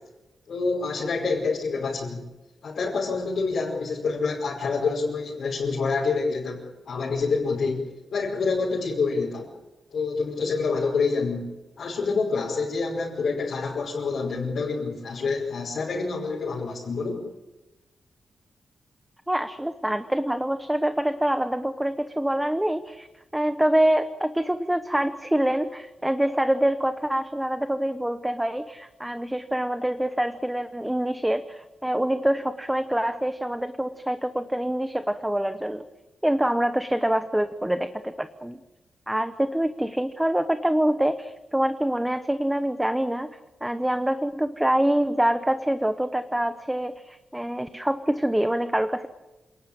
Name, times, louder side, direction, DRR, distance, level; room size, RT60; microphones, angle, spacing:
voice 1, 0.5-2.2 2.6-7.8 8.1-9.5 9.9-11.5 11.8-17.2, left 4 dB, 55° left, -4 dB, 5.2 m, -27 dB
voice 2, 19.3-23.1 23.3-35.8 36.2-38.6 39.1-43.3 43.6-49.1, right 1 dB, 5° right, 9 dB, 0.9 m, -25 dB
27.5 x 19.0 x 8.9 m, 1.1 s
wide cardioid pair, 165°, 0 cm